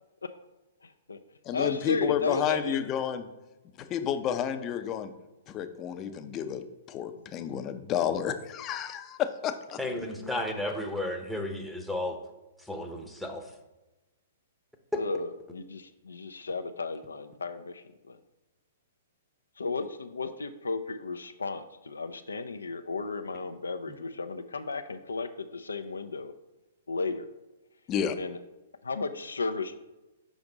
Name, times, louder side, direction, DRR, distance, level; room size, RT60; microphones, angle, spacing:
voice 1, 0.8-1.2 1.5-2.8 9.8-10.6 14.9-18.2 19.6-26.3 26.9-27.3 28.2-28.4 28.8-29.8, left 3 dB, 80° left, 9 dB, 0.4 m, -34 dB
voice 2, 1.4-3.3 3.8-5.1 5.5-9.8 27.9-28.2, left 9 dB, 30° left, 9 dB, 0.6 m, -31 dB
voice 3, 9.8-12.2 12.7-13.4, left 1 dB, ahead, 2 dB, 0.9 m, -33 dB
6.1 x 5.1 x 3.9 m, 1.0 s
figure-of-eight pair, 115°, 0 cm